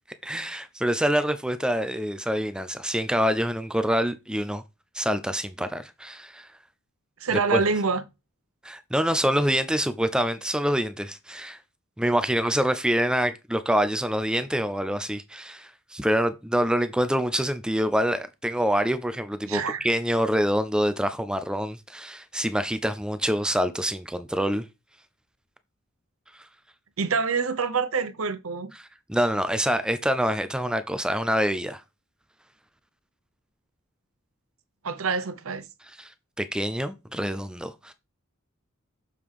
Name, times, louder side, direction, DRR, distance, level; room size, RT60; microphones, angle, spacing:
voice 1, 0.2-4.6 4.9-6.5 7.3-7.6 8.6-11.6 12.0-24.6 28.7-31.8 36.0-36.1 36.4-37.9, equal, 5° right, 0.4 m, -26 dB
voice 2, 7.2-8.0 19.5-19.9 27.0-28.7 34.8-35.6, right 4 dB, 90° right, 0.8 m, -26 dB
6.8 x 3.7 x 4.8 m
head